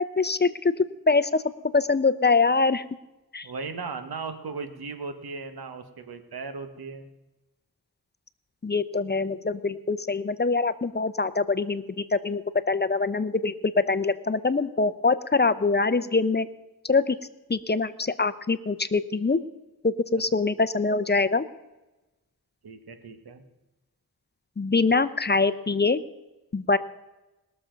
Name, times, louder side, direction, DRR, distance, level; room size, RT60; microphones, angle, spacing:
voice 1, 0.0-1.4 1.7-2.8 3.3-3.5 8.6-12.4 12.7-16.5 16.8-17.2 17.5-19.4 19.8-21.4 24.6-26.0 26.5-26.8, left 4 dB, 30° left, 13 dB, 0.6 m, -24 dB
voice 2, 3.4-7.1 22.6-23.4, right 4 dB, 85° right, 9 dB, 1.3 m, -37 dB
20.5 x 6.9 x 5.1 m, 1.0 s
cardioid pair, 55°, 36 cm